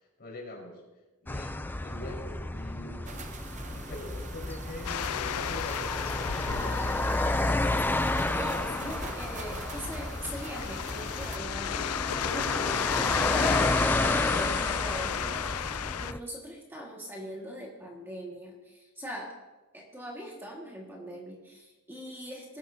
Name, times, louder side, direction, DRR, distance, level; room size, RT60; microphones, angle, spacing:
voice 1, 0.2-0.8 1.2-3.1 3.7-7.2, left 1 dB, 45° left, -2 dB, 4.6 m, -42 dB
sound 1, 1.3-16.2, left 2 dB, 10° left, 0.4 m, -31 dB
sound 2, 3.0-11.4, right 4 dB, 35° right, 0.8 m, -45 dB
sound 3, 4.8-16.1, left 10 dB, 85° left, 0.4 m, -34 dB
voice 2, 8.2-19.4 19.7-22.6, equal, 10° right, -2 dB, 1.8 m, -41 dB
20.0 x 11.5 x 2.8 m, 1.1 s
head